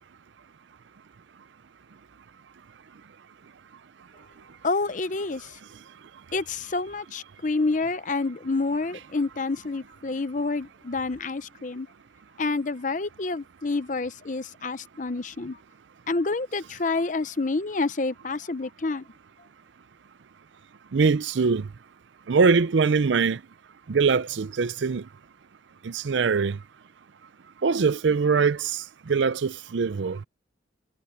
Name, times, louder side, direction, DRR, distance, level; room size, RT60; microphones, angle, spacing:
voice 1, 4.6-5.5 6.3-11.9 12.4-15.6 16.1-19.0, left 3 dB, 40° left, 0.7 m, -28 dB
voice 2, 20.9-21.7 22.3-23.4 23.9-25.1 25.8-26.6 27.6-30.2, right 5 dB, 75° right, 0.5 m, -23 dB
head